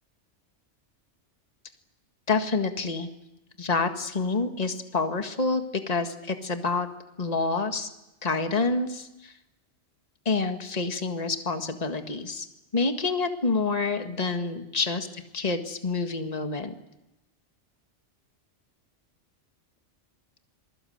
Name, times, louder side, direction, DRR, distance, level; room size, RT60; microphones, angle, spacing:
voice 1, 2.3-3.1 3.6-6.9 7.2-7.9 8.2-9.3 10.3-12.5 12.7-15.1 15.3-16.7, left 4 dB, 30° left, 6 dB, 1.8 m, -27 dB
27.5 x 21.5 x 7.9 m, 0.94 s
omnidirectional pair, 1.2 m